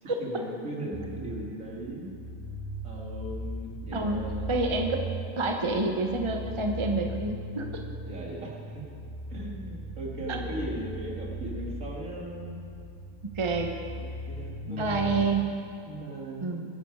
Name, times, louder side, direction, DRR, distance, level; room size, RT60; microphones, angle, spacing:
voice 1, 0.0-2.1 2.8-4.5 8.1-8.8 9.3-12.6 13.9-15.4 15.8-16.5, right 1 dB, 60° right, -3 dB, 2.7 m, -38 dB
sound 1, 0.9-15.2, right 1 dB, 5° left, 1.0 m, -38 dB
voice 2, 3.9-5.0 5.4-7.7 10.3-10.4 13.2-13.7 14.7-15.5 16.4-16.6, right 3 dB, 25° right, 3 dB, 0.8 m, -28 dB
21.5 x 10.0 x 4.8 m, 2.4 s
omnidirectional pair, 1.6 m